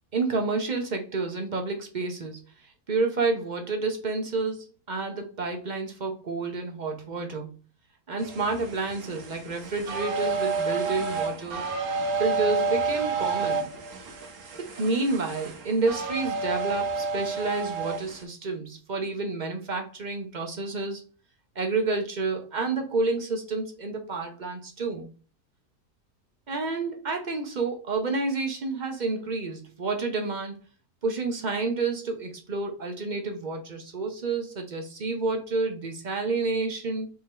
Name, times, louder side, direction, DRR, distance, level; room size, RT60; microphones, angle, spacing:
voice 1, 0.1-2.4 2.9-7.5 8.1-11.7 12.2-13.7 14.6-21.0 21.6-25.1 26.5-30.6 31.0-37.1, right 3 dB, 40° right, 4 dB, 0.7 m, -29 dB
sound 1, 8.2-18.2, right 4 dB, 80° right, 1.4 m, -30 dB
4.6 x 2.8 x 3.6 m, 0.37 s
omnidirectional pair, 1.5 m